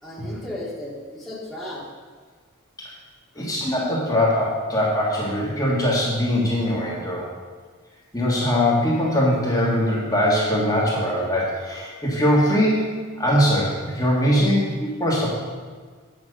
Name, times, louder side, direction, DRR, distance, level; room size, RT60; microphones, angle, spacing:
voice 1, 0.0-1.8 3.4-3.5 6.6-6.7, left 1 dB, ahead, -6 dB, 2.0 m, -35 dB
voice 2, 3.4-7.3 8.1-15.4, equal, 20° left, -6 dB, 2.0 m, -21 dB
9.1 x 6.0 x 6.5 m, 1.5 s
head